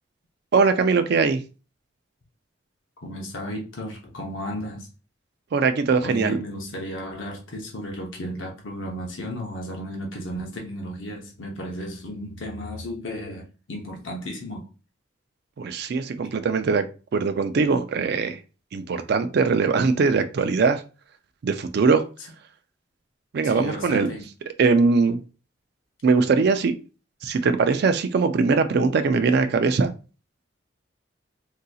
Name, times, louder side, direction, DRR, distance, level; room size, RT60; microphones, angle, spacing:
voice 1, 0.5-1.4 5.5-6.4 15.6-16.9 17.1-18.4 18.7-20.8 21.4-22.0 23.3-24.1 24.6-25.2 26.0-26.7 27.2-29.9, right 4 dB, 55° right, 0.4 m, -21 dB
voice 2, 3.0-4.9 6.0-14.7 23.4-24.2, equal, 80° left, 0.8 m, -34 dB
3.8 x 2.7 x 2.3 m
head